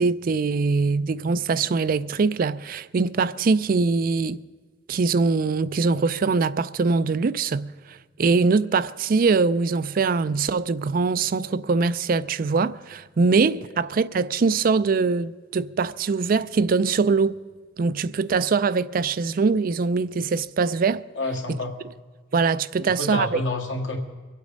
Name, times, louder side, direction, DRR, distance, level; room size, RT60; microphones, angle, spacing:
voice 1, 0.0-4.4 4.9-17.4 17.8-21.0 22.3-23.4, right 4 dB, 50° right, 0.4 m, -22 dB
voice 2, 21.2-21.7 22.7-24.0, left 2 dB, 90° left, 1.9 m, -29 dB
23.5 x 8.3 x 5.3 m
head